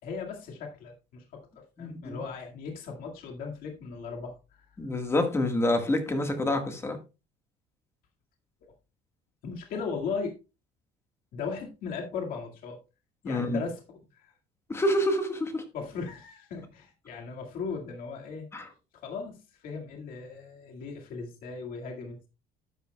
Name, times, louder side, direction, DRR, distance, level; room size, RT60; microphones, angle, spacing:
voice 1, 0.0-1.5 1.8-4.3 4.7-4.8 9.4-10.4 11.3-12.8 13.2-14.3 15.7-18.7 19.0-22.3, left 5 dB, 55° left, 2.0 m, -37 dB
voice 2, 1.8-2.2 4.8-7.0 13.2-13.6 14.7-15.6 18.5-18.7, left 1 dB, 15° left, 1.6 m, -27 dB
12.5 x 9.3 x 2.3 m
cardioid pair, 150°, 17 cm